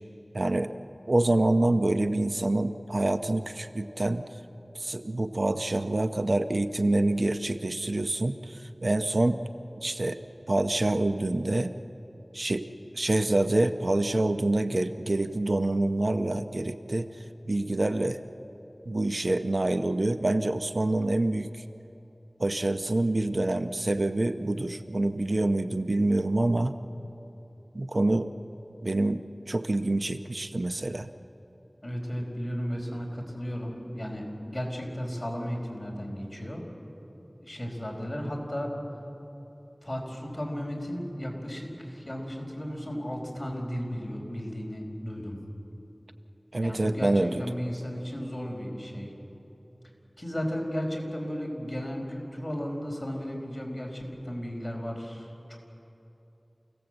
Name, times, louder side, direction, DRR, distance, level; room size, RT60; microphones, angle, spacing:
voice 1, 0.3-0.7 1.1-4.2 4.7-9.4 9.8-10.2 10.5-11.7 12.3-12.7 12.9-17.1 17.5-18.2 18.9-21.6 22.4-26.7 27.7-28.3 28.8-31.1 46.5-47.4, right 2 dB, 70° right, 9 dB, 0.7 m, -26 dB
voice 2, 31.8-36.6 37.4-38.7 39.8-45.4 46.6-49.1 50.2-55.6, equal, 30° left, 0 dB, 4.8 m, -34 dB
29.0 x 17.0 x 7.9 m, 3.0 s
wide cardioid pair, 50°, 0 cm